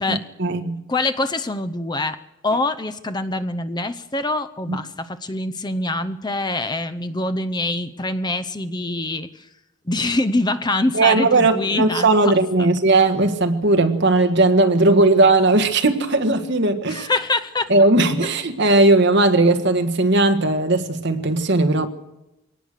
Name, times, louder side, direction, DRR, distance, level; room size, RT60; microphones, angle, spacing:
voice 1, 0.1-0.8 4.7-4.8 10.9-17.1 17.7-21.9, right 2 dB, 55° right, 1.5 m, -17 dB
voice 2, 0.9-2.2 2.4-9.5 9.9-12.3 12.6-12.7 16.9-17.7, left 2 dB, 20° left, 0.7 m, -24 dB
22.0 x 18.5 x 6.6 m
head